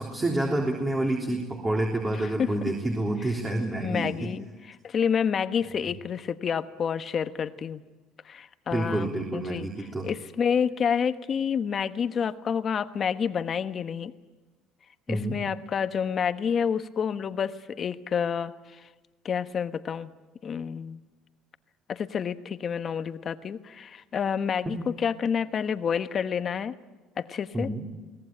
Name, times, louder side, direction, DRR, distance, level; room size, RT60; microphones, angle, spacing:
voice 1, 0.0-4.3 8.7-10.1 15.1-15.4 27.5-27.8, right 1 dB, 20° right, 0 dB, 3.4 m, -28 dB
voice 2, 3.7-7.8 8.2-9.7 10.0-14.1 15.1-18.9 19.2-20.1 20.4-21.0 21.9-26.7 27.2-27.7, left 7 dB, 40° left, 10 dB, 1.2 m, -29 dB
23.5 x 18.0 x 9.0 m, 1.2 s
supercardioid pair, 100°, 0 cm